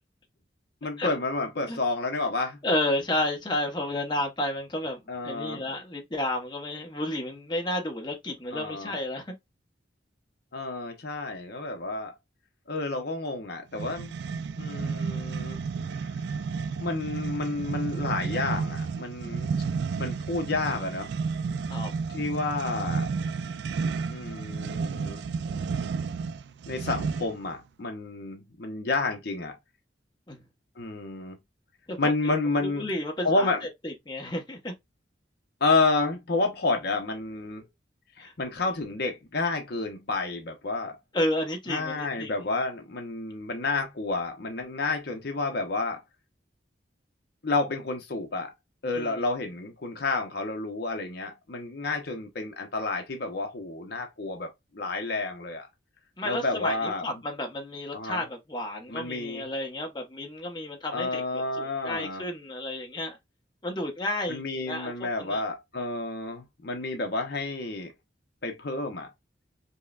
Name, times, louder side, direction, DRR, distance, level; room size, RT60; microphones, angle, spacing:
voice 1, 0.8-2.6 5.1-5.7 8.5-8.9 10.5-12.1 12.7-14.2 14.6-15.6 16.8-19.5 20.0-21.1 22.1-23.1 24.1-25.2 26.7-29.6 30.8-31.4 32.0-32.9 33.2-33.6 35.6-37.6 38.2-41.0 41.7-46.0 47.4-48.5 48.8-55.7 56.2-57.0 57.9-58.2 58.9-59.5 60.9-62.2 64.3-67.9 68.4-69.1, left 3 dB, 60° left, 0.7 m, -30 dB
voice 2, 2.6-9.3 21.7-21.9 30.3-30.4 31.9-32.1 32.6-34.7 38.2-38.3 41.1-42.3 48.9-49.2 56.2-63.2 63.6-64.9 65.2-65.4, left 1 dB, 25° left, 1.0 m, -31 dB
sound 1, 13.7-27.5, right 5 dB, 65° right, 0.3 m, -32 dB
5.4 x 2.1 x 2.3 m
head